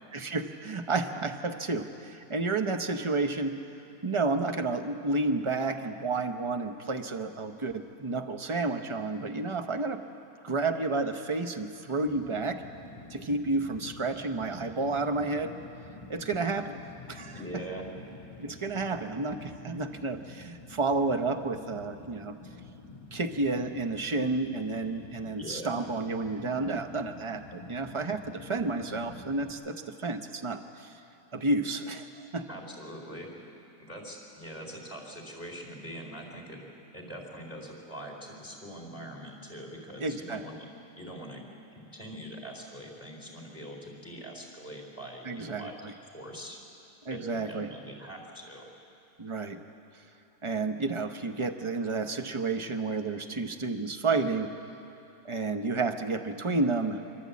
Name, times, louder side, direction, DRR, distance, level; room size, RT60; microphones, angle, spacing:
voice 1, 0.1-3.6 4.0-10.0 10.4-12.6 13.1-15.5 16.1-16.8 17.1-17.6 18.4-22.4 23.1-30.9 31.3-32.1 32.3-32.5 40.0-40.4 45.2-45.9 47.0-47.7 49.2-49.6 50.4-54.5 55.2-57.0, right 3 dB, 30° right, 7 dB, 0.6 m, -31 dB
Fire, 12.1-29.5, left 3 dB, 25° left, 1.8 m, -48 dB
voice 2, 17.3-17.8 25.3-25.8 32.5-33.3 33.8-36.7 36.9-40.6 41.0-41.5 41.7-45.8 46.1-46.6 47.1-48.7, equal, 10° left, 0 dB, 4.0 m, -43 dB
26.0 x 12.5 x 8.5 m, 2.8 s
omnidirectional pair, 1.7 m